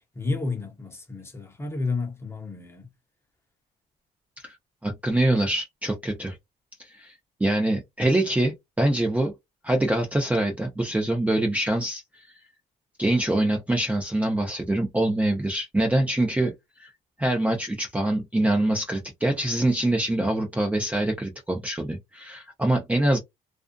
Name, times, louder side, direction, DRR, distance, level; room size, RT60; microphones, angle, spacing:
voice 1, 0.1-2.9, left 3 dB, 15° left, 0.9 m, -31 dB
voice 2, 4.8-6.4 6.8-7.1 7.4-9.3 9.6-12.2 13.0-16.5 16.8-16.9 17.2-23.2, right 1 dB, 10° right, 0.6 m, -24 dB
2.5 x 2.3 x 2.2 m
cardioid pair, 110°, 17 cm